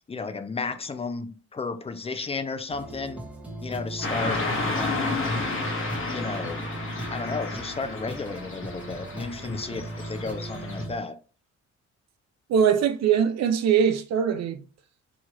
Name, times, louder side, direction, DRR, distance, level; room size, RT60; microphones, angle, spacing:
voice 1, 0.1-3.2 3.6-4.5 4.8-5.5 6.1-6.7 7.1-11.2, left 4 dB, 20° left, 0.4 m, -33 dB
sound 1, 2.7-11.0, right 2 dB, 5° right, 0.8 m, -37 dB
Car passing by / Traffic noise roadway noise, 4.0-10.8, left 3 dB, 45° left, 1.0 m, -32 dB
voice 2, 12.5-14.6, right 7 dB, 60° right, 0.6 m, -22 dB
3.0 x 2.3 x 3.0 m
cardioid pair, 90°, 30 cm